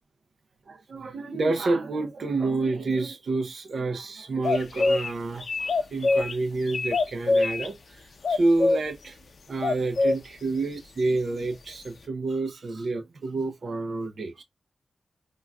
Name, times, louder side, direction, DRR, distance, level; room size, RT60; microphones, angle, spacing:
voice 1, 0.7-9.2 9.5-14.4, right 3 dB, 65° right, 0.6 m, -29 dB
sound 1, 4.4-5.1 5.4-6.3 6.7-7.7 8.2-8.8 9.6-10.1, left 3 dB, 65° left, 0.5 m, -23 dB
3.8 x 2.3 x 2.2 m
cardioid pair, 65°, 0 cm